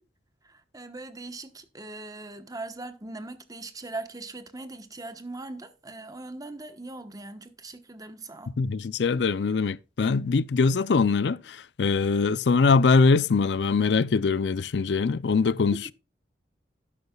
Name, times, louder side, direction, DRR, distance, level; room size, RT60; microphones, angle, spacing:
voice 1, 0.5-8.5 15.7-15.9, right 2 dB, 20° right, 1.1 m, -40 dB
voice 2, 8.6-15.9, left 4 dB, 75° left, 0.5 m, -23 dB
12.0 x 10.5 x 2.3 m
head